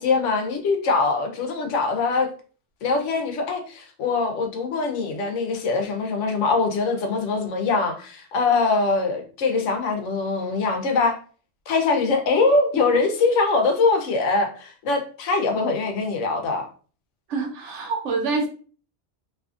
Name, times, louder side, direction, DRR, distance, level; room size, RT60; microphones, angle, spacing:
voice 1, 0.0-2.3 2.8-11.1 11.7-16.7, left 3 dB, 90° left, 1.0 m, -23 dB
voice 2, 17.3-18.5, right 4 dB, 85° right, 1.1 m, -26 dB
2.7 x 2.5 x 2.3 m
omnidirectional pair, 1.2 m